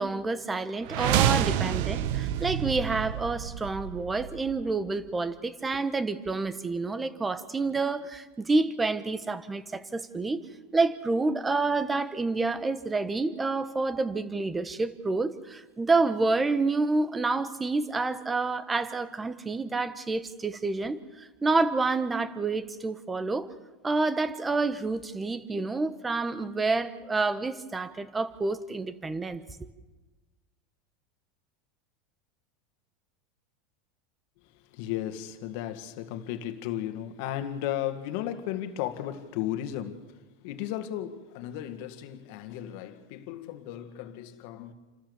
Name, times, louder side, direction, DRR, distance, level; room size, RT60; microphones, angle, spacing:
voice 1, 0.0-10.4 10.7-23.5 23.8-29.4, right 3 dB, 15° right, 1.2 m, -28 dB
sound 1, 0.8-4.8, right 11 dB, 65° right, 1.0 m, -28 dB
voice 2, 34.5-44.7, left 12 dB, 65° left, 1.9 m, -35 dB
28.5 x 13.5 x 7.1 m
supercardioid pair, 125°, 0 cm